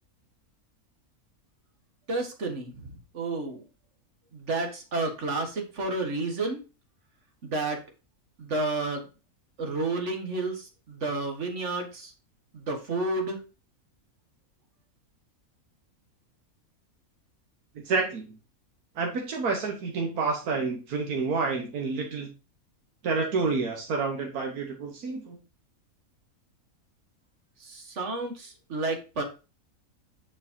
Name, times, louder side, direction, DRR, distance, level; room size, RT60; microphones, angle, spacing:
voice 1, 2.1-3.6 4.3-6.6 7.4-7.8 8.4-9.1 9.6-12.1 12.5-13.4 27.6-29.2, right 2 dB, 55° right, 4 dB, 1.7 m, -31 dB
voice 2, 17.7-18.2 18.9-22.3 23.0-25.4, right 4 dB, 85° right, 1 dB, 1.6 m, -29 dB
7.2 x 6.1 x 2.8 m, 0.31 s
omnidirectional pair, 1.5 m